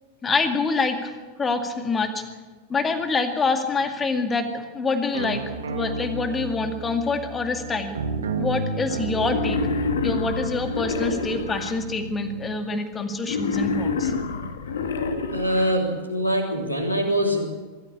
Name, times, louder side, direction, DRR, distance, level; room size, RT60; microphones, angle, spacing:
voice 1, 0.2-2.2 2.7-8.0 8.4-9.6 10.0-14.1, left 4 dB, 20° left, 7 dB, 2.1 m, -26 dB
sound 1, 5.1-12.6, right 4 dB, 65° right, 1.9 m, -32 dB
Wild animals, 9.2-11.7 13.2-15.7, left 4 dB, 65° left, 2.0 m, -27 dB
voice 2, 15.3-17.4, equal, 80° left, 2 dB, 3.4 m, -23 dB
23.0 x 14.5 x 8.6 m, 1.4 s
figure-of-eight pair, 90°, 0 cm